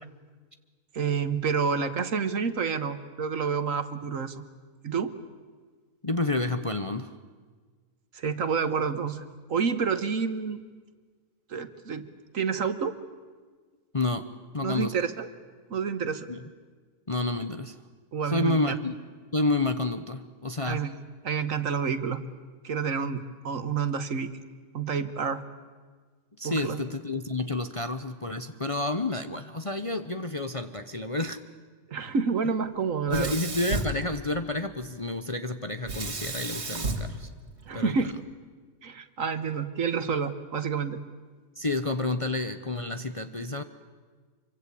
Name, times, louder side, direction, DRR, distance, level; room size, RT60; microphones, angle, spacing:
voice 1, 0.9-4.4 4.8-5.2 8.1-9.2 9.5-10.6 11.5-12.1 12.3-13.0 14.6-15.3 15.7-16.3 18.1-18.8 20.7-22.2 22.6-24.4 24.7-25.4 26.4-26.8 31.9-33.4 37.7-38.1 38.8-41.0, right 6 dB, 60° right, 11 dB, 1.7 m, -29 dB
voice 2, 6.0-7.2 13.9-14.9 16.3-16.4 17.1-17.8 18.2-19.0 19.3-20.9 26.4-31.4 33.1-37.3 37.7-38.0 41.6-43.6, left 2 dB, 25° left, 8 dB, 0.9 m, -30 dB
Sink (filling or washing), 33.1-34.7 35.8-38.1, right 2 dB, 45° right, 2.5 m, -33 dB
26.0 x 24.0 x 8.5 m, 1.5 s
omnidirectional pair, 1.6 m